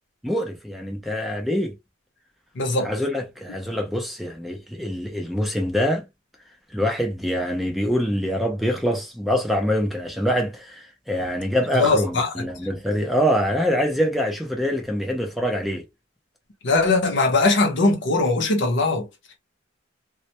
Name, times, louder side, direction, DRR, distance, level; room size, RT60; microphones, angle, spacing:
voice 1, 0.2-1.7 2.8-6.0 6.7-15.8, equal, ahead, 0.4 m, -24 dB
voice 2, 2.6-2.9 11.7-12.4 16.6-19.1, left 3 dB, 65° left, 0.7 m, -20 dB
2.1 x 2.1 x 2.7 m
head